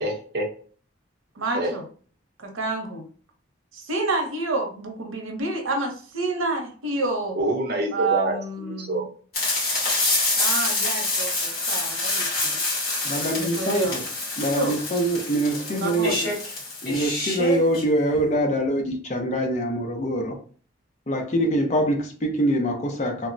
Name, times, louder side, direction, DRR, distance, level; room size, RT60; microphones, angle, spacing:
voice 1, 0.0-0.4 1.5-1.7 7.4-8.3 8.6-9.0, right 1 dB, 50° right, 0.7 m, -26 dB
voice 2, 1.4-1.8 2.4-3.1 3.7-7.4 7.9-9.1 10.4-12.6 13.3-14.0 14.6-14.8 15.7-16.3, right 3 dB, 85° right, 0.7 m, -29 dB
sound 1, 9.3-17.8, left 2 dB, 50° left, 1.4 m, -26 dB
voice 3, 13.0-14.0 14.4-16.1 16.8-20.4 21.1-23.3, right 1 dB, 35° left, 0.5 m, -24 dB
3.2 x 2.0 x 2.5 m
head